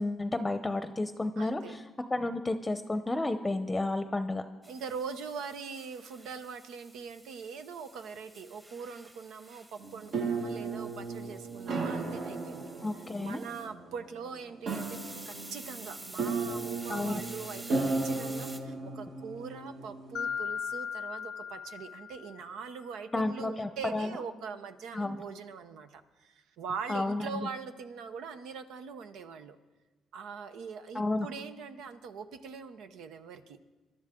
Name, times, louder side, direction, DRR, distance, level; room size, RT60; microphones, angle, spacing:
voice 1, 0.0-1.8 2.1-4.4 12.8-13.4 16.9-17.2 23.1-24.1 24.9-25.2 26.9-27.5 30.9-31.3, left 2 dB, 15° left, 9 dB, 0.7 m, -31 dB
voice 2, 1.4-1.8 4.7-12.7 13.2-15.0 15.3-29.6 30.1-33.6, right 6 dB, 85° right, 9 dB, 0.8 m, -42 dB
sound 1, 4.6-13.7 14.6-18.6, right 1 dB, 25° right, 1.6 m, -49 dB
sound 2, 9.8-20.3, right 3 dB, 65° right, 1.8 m, -35 dB
Mallet percussion, 20.1-22.7, left 7 dB, 65° left, 0.5 m, -37 dB
21.5 x 12.0 x 3.7 m, 1.2 s
cardioid pair, 90°, 0 cm